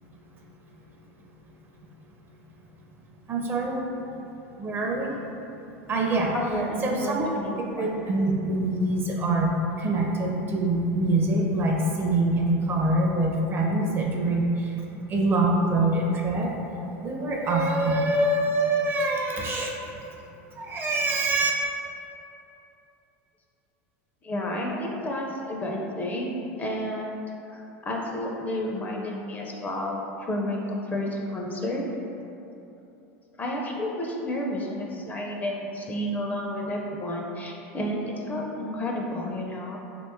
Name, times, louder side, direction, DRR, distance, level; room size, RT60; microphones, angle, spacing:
voice 1, 3.3-3.8 4.6-5.1 5.9-6.3 6.8-7.3 7.8-9.5 9.8-14.5 15.1-16.5 17.0-19.7 20.6-21.5, right 2 dB, 30° right, -1 dB, 0.5 m, -24 dB
voice 2, 6.3-7.9 24.2-30.0 30.3-30.6 30.9-31.9 33.4-39.8, left 1 dB, 25° left, -1 dB, 0.4 m, -31 dB
3.0 x 2.8 x 3.4 m, 2.9 s
supercardioid pair, 105°, 7 cm